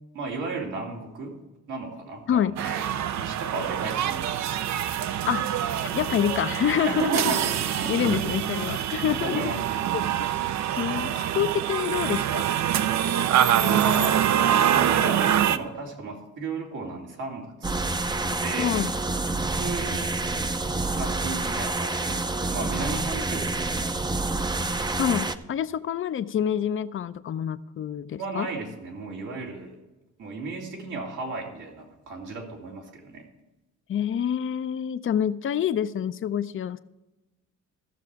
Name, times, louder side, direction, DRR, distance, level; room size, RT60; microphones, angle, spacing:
voice 1, 0.1-1.4 1.7-2.9 3.1-4.4 6.8-7.9 9.2-10.0 13.5-14.3 14.7-17.9 18.4-18.7 19.6-20.1 20.9-24.5 28.2-29.8 30.2-33.2, right 3 dB, 85° right, -2 dB, 2.6 m, -34 dB
sound 1, 2.6-15.6, right 10 dB, 65° right, 0.6 m, -25 dB
voice 2, 5.9-7.1 7.9-9.5 10.8-12.5 18.6-18.9 25.0-28.5 33.9-36.8, left 9 dB, 45° left, 13 dB, 0.5 m, -27 dB
sound 2, 17.6-25.3, right 2 dB, 15° right, 0.5 m, -28 dB
14.5 x 6.7 x 4.7 m, 1.0 s
cardioid pair, 90°, 30 cm